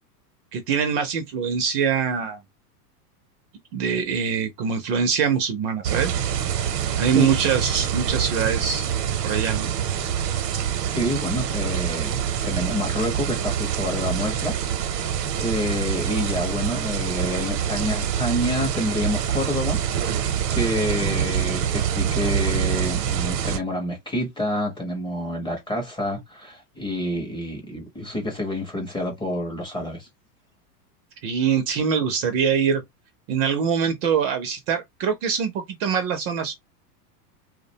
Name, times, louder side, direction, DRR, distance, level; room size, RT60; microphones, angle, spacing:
voice 1, 0.5-2.4 3.7-6.1 7.0-8.8 9.2-9.7 31.2-32.8 33.3-36.5, right 7 dB, 40° right, 0.4 m, -23 dB
sound 1, 5.8-23.6, right 9 dB, 75° right, 0.7 m, -26 dB
voice 2, 10.9-14.5 14.8-20.2 20.5-30.1, left 1 dB, 10° left, 0.5 m, -28 dB
2.3 x 2.1 x 2.7 m
hypercardioid pair, 120°, 48 cm